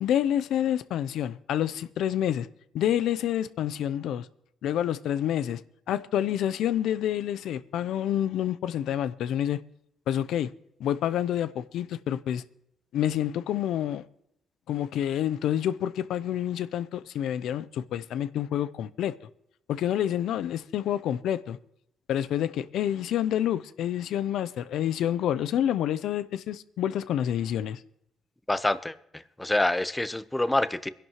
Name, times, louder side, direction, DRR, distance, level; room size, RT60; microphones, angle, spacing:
voice 1, 0.0-2.5 2.7-4.3 4.6-5.6 5.9-9.6 10.1-10.5 10.8-12.4 12.9-14.0 14.7-19.1 19.7-21.6 22.1-27.8, left 10 dB, 80° left, 0.5 m, -28 dB
voice 2, 28.5-28.9 29.4-30.9, left 1 dB, 10° left, 0.8 m, -26 dB
22.5 x 11.0 x 3.0 m
cardioid pair, 90°, 0 cm